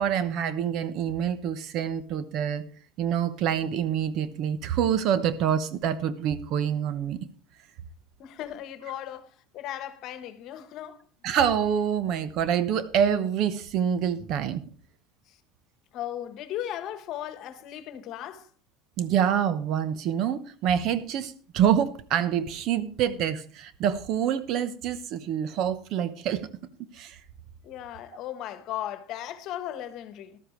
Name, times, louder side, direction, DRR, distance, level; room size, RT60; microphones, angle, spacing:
voice 1, 0.0-2.6 3.0-7.2 11.2-14.6 19.0-26.5 26.9-27.2, right 9 dB, 55° right, 1.0 m, -26 dB
voice 2, 8.2-9.3 9.5-11.0 15.9-18.5 27.6-30.4, left 11 dB, 55° left, 1.2 m, -36 dB
13.5 x 12.0 x 3.2 m
supercardioid pair, 125°, 0 cm